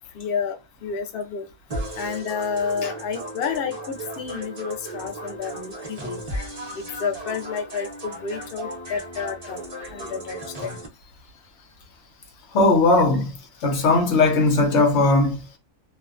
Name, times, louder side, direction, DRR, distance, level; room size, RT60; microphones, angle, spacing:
voice 1, 0.1-1.5 2.0-6.2 6.7-9.6 9.9-10.8, left 6 dB, 85° left, 0.5 m, -30 dB
sound 1, 1.7-10.9, right 1 dB, 40° right, 0.6 m, -35 dB
voice 2, 12.5-13.3 13.6-15.4, left 2 dB, 55° left, 1.0 m, -18 dB
2.6 x 2.2 x 2.4 m
omnidirectional pair, 1.6 m